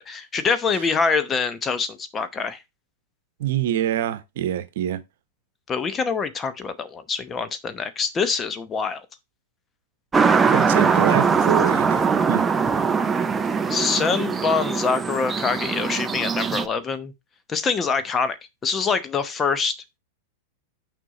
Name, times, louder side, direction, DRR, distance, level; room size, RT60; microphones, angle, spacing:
voice 1, 0.0-2.6 5.7-9.0 13.7-17.1 17.5-18.4 18.6-19.7, left 5 dB, 20° left, 0.9 m, -25 dB
voice 2, 3.4-5.0 10.5-12.4, right 12 dB, 70° right, 1.0 m, -25 dB
sound 1, 10.1-16.6, right 5 dB, 15° right, 0.6 m, -21 dB
6.2 x 5.2 x 4.0 m
hypercardioid pair, 135°, 0 cm